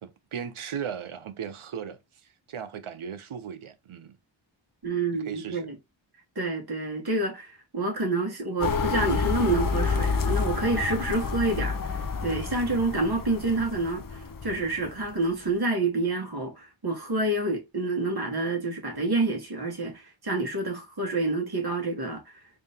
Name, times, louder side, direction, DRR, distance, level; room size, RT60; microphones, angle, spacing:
voice 1, 0.0-2.0 2.5-4.2 5.1-5.7, right 8 dB, 90° right, 0.7 m, -37 dB
voice 2, 4.8-5.7 6.3-22.2, right 2 dB, 50° right, 1.5 m, -28 dB
sound 1, 8.6-15.1, left 5 dB, 45° left, 0.6 m, -29 dB
3.6 x 2.7 x 3.4 m
wide cardioid pair, 65°, 48 cm